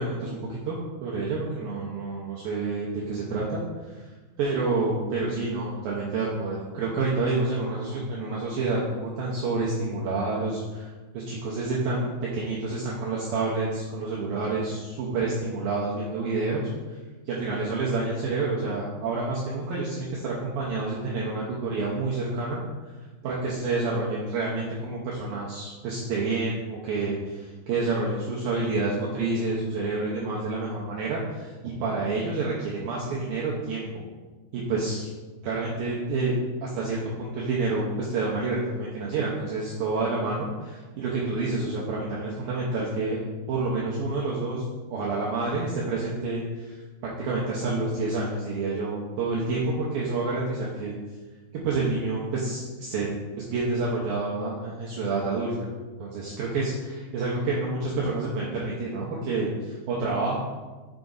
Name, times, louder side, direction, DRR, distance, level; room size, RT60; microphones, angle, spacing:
voice 1, 0.0-4.1 4.4-17.0 17.3-22.6 23.2-33.9 34.5-35.1 35.4-36.3 36.6-43.2 43.5-44.6 44.9-50.9 51.5-53.1 53.4-55.5 56.0-60.4, right 3 dB, 85° right, -5 dB, 2.0 m, -28 dB
6.5 x 5.9 x 3.9 m, 1.3 s
omnidirectional pair, 5.4 m